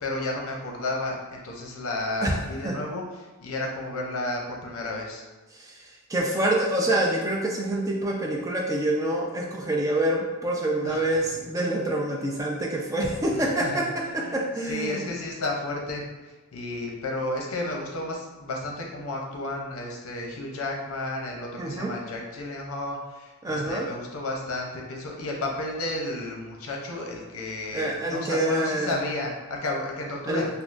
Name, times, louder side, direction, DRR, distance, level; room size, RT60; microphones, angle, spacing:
voice 1, 0.0-5.2 10.8-11.3 13.3-14.4 14.6-30.5, left 2 dB, 80° left, 0 dB, 0.6 m, -32 dB
voice 2, 5.5-15.0 21.6-21.9 23.4-23.9 27.7-29.0 30.3-30.5, right 1 dB, 15° right, -1 dB, 0.3 m, -26 dB
3.5 x 2.3 x 2.4 m, 1.2 s
head